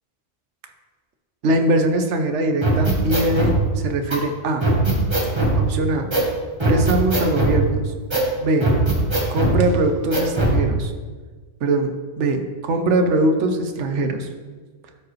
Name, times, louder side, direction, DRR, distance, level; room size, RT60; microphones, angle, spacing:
voice 1, 1.4-4.7 5.6-6.1 6.6-7.9 8.4-8.8 9.3-10.9 11.6-14.3, right 2 dB, 75° right, 6 dB, 1.1 m, -22 dB
sound 1, 2.6-3.5 4.1-4.2 4.6-5.6 6.1-6.3 6.6-7.6 8.1-8.3 8.6-9.6 10.1-10.6, right 1 dB, 25° right, 1.3 m, -20 dB
12.5 x 4.8 x 3.1 m, 1.4 s
omnidirectional pair, 1.2 m